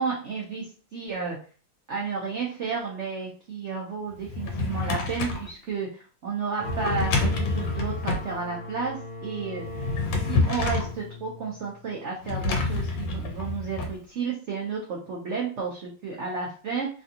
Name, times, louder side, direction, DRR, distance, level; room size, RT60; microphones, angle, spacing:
voice 1, 0.0-1.4 1.9-8.9 9.2-9.6 10.2-16.9, right 5 dB, 90° right, -2 dB, 0.6 m, -32 dB
Drawer open or close, 4.2-5.5 6.6-8.3 9.6-10.9 12.2-13.9, left 3 dB, 80° left, 1.4 m, -27 dB
sound 1, 6.6-12.0, left 1 dB, 25° right, 1.0 m, -39 dB
3.3 x 2.5 x 2.7 m, 0.40 s
omnidirectional pair, 2.1 m